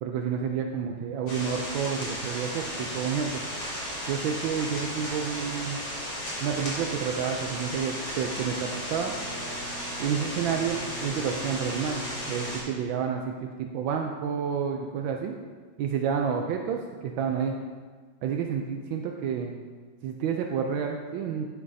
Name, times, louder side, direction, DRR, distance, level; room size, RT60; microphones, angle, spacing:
voice 1, 0.0-3.4 4.1-5.8 6.4-9.1 10.0-15.3 15.8-17.6 18.2-19.5 20.0-21.5, right 7 dB, 80° right, 3 dB, 1.3 m, -30 dB
sound 1, 1.3-12.6, equal, 80° left, 3.4 m, -35 dB
Bowed string instrument, 8.5-13.8, right 1 dB, 60° right, 1.5 m, -44 dB
11.0 x 7.5 x 2.7 m, 1.5 s
omnidirectional pair, 2.2 m